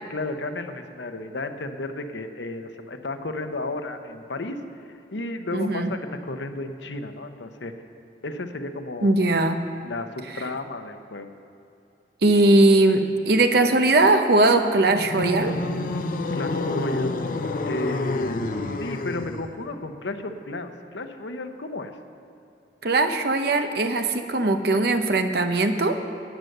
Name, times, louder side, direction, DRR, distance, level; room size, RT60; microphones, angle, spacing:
voice 1, 0.1-4.6 5.1-7.7 8.2-9.4 9.8-11.3 16.3-17.2 17.7-18.4 18.8-21.9, left 2 dB, 80° left, 7 dB, 0.9 m, -33 dB
voice 2, 5.5-5.9 9.0-9.7 12.2-15.6 22.8-26.0, right 2 dB, 60° right, 7 dB, 0.8 m, -20 dB
sound 1, 14.9-19.5, left 2 dB, 50° left, 0.7 m, -28 dB
14.5 x 9.3 x 6.7 m, 2.7 s
head